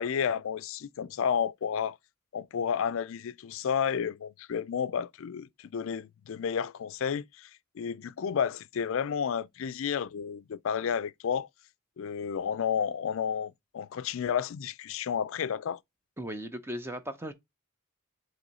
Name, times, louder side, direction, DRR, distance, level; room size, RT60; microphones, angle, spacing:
voice 1, 0.0-2.0 2.3-7.5 7.8-11.5 12.0-15.8, left 7 dB, 60° left, 0.4 m, -31 dB
voice 2, 16.2-17.3, right 1 dB, 10° right, 0.6 m, -37 dB
7.6 x 3.0 x 4.0 m
head